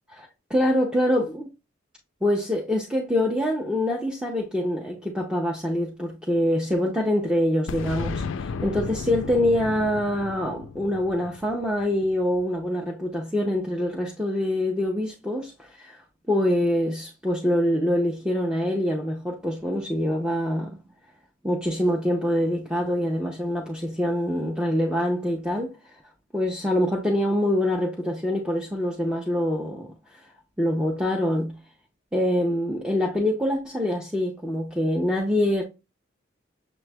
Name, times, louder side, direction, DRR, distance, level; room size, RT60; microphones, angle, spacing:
voice 1, 0.1-1.5 2.2-16.0 16.3-20.8 21.4-25.7 26.3-29.9 30.6-31.5 32.1-35.6, left 1 dB, 5° right, 0.7 m, -25 dB
Boom, 7.7-12.4, left 5 dB, 75° left, 0.3 m, -34 dB
6.9 x 3.1 x 2.2 m
head